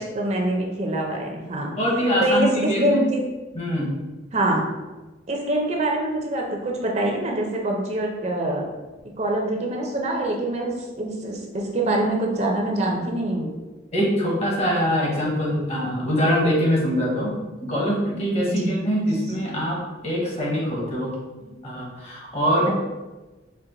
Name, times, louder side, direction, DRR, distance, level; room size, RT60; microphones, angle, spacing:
voice 1, 0.0-1.7 2.2-3.2 4.3-4.6 5.3-8.6 9.2-13.4 18.5-18.7 21.4-21.5, right 1 dB, 40° right, 0 dB, 0.5 m, -24 dB
voice 2, 1.7-3.0 3.5-4.0 13.9-17.4 17.6-21.1 21.6-22.7, equal, 35° left, -3 dB, 1.0 m, -23 dB
4.4 x 2.1 x 3.8 m, 1.2 s
head